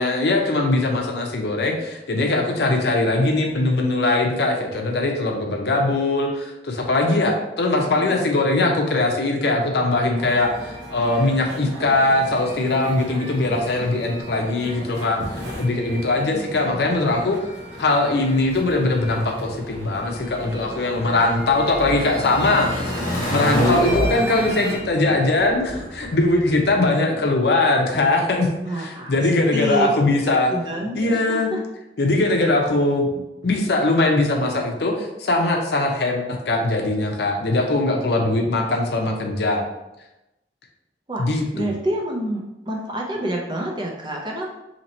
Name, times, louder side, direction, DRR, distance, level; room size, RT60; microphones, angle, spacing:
voice 1, 0.0-17.4 17.8-28.5 28.8-30.5 31.0-31.5 32.0-39.6 41.2-41.7, left 2 dB, 65° left, 2 dB, 0.6 m, -21 dB
voice 2, 7.7-8.2 16.3-17.2 24.1-24.5 27.1-27.2 28.6-29.2 29.5-29.9 30.2-31.6 32.3-32.6 41.1-44.5, right 1 dB, 25° right, -1 dB, 0.6 m, -29 dB
sound 1, 10.2-24.8, equal, 75° right, 0.9 m, -35 dB
sound 2, 18.5-26.8, left 1 dB, 25° left, 1.2 m, -28 dB
2.9 x 2.8 x 4.1 m, 0.94 s
head